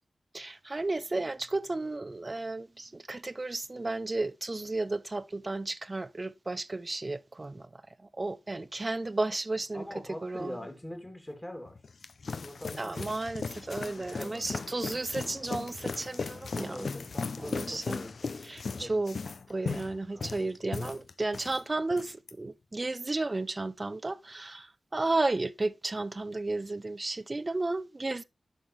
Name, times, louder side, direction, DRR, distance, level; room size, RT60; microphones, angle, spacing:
voice 1, 0.3-7.7 8.2-9.8 10.2-10.6 12.8-16.9 17.4-18.0 18.4-19.2 19.5-28.2, right 2 dB, 30° right, 0.6 m, -33 dB
voice 2, 9.7-11.8 12.4-13.1 14.0-14.5 16.5-18.3 18.8-19.2 20.1-20.6, left 1 dB, 10° left, 2.8 m, -43 dB
sound 1, 11.7-21.6 21.9-22.3, left 4 dB, 70° left, 0.6 m, -37 dB
11.5 x 6.3 x 3.2 m
wide cardioid pair, 110°, 0 cm